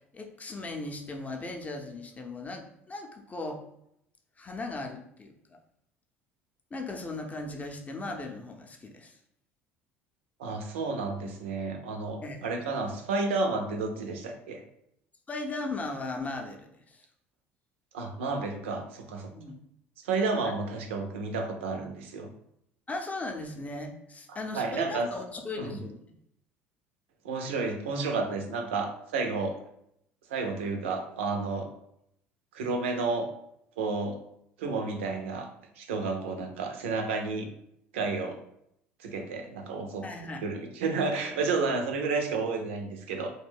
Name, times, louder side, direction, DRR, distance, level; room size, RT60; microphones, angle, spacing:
voice 1, 0.1-2.6 2.9-3.6 4.4-5.6 6.7-9.2 12.2-12.5 15.3-17.0 19.3-19.5 20.4-20.5 22.9-26.0 40.0-40.4, left 2 dB, 20° left, 3 dB, 0.5 m, -37 dB
voice 2, 10.4-14.6 17.9-19.3 20.0-22.3 24.3-25.1 25.6-25.8 27.2-29.6 30.3-31.7 32.5-33.3 33.8-34.2 34.6-35.5 35.8-37.5 37.9-38.4 39.0-40.0 40.4-43.3, right 3 dB, 75° right, 4 dB, 0.4 m, -31 dB
2.6 x 2.2 x 3.4 m, 0.75 s
hypercardioid pair, 65°, 7 cm